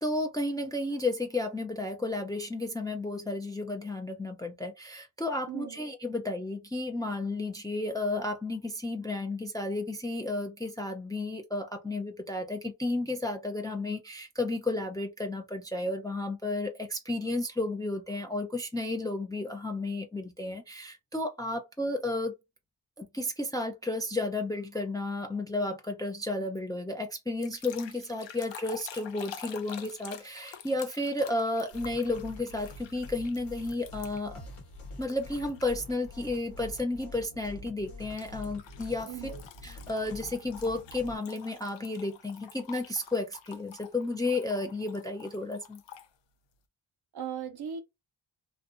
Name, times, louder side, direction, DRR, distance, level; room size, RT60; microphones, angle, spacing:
voice 1, 0.0-22.3 23.0-34.4 35.0-39.3 39.6-45.8, left 2 dB, 10° left, 0.4 m, -32 dB
voice 2, 5.5-5.8 39.1-39.4 47.1-47.8, right 8 dB, 50° right, 0.7 m, -37 dB
sound 1, 27.4-34.4 35.0-35.9 36.3-36.6 38.2-46.1, left 9 dB, 65° left, 0.6 m, -48 dB
sound 2, 31.7-41.2, left 1 dB, 90° left, 1.1 m, -46 dB
2.6 x 2.2 x 2.5 m
cardioid pair, 65°, 49 cm